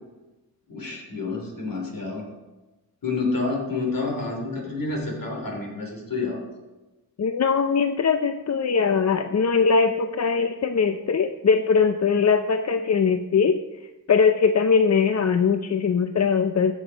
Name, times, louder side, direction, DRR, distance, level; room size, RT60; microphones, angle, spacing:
voice 1, 0.7-2.2 3.0-6.5, left 3 dB, 65° left, 1 dB, 3.4 m, -29 dB
voice 2, 7.2-13.6 14.1-16.7, left 5 dB, 45° left, 8 dB, 0.6 m, -21 dB
15.5 x 6.3 x 5.1 m, 1.1 s
wide cardioid pair, 85°, 37 cm